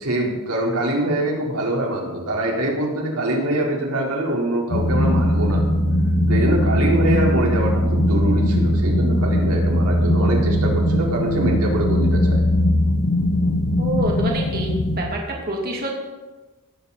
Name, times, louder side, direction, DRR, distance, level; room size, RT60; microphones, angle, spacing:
voice 1, 0.0-5.6 6.3-12.4, right 1 dB, 85° right, -1 dB, 4.3 m, -24 dB
sound 1, 4.7-15.0, equal, 80° left, 1.6 m, -19 dB
voice 2, 13.8-15.2 15.5-16.0, right 1 dB, 45° right, -2 dB, 2.7 m, -27 dB
17.5 x 16.0 x 4.3 m, 1.2 s
head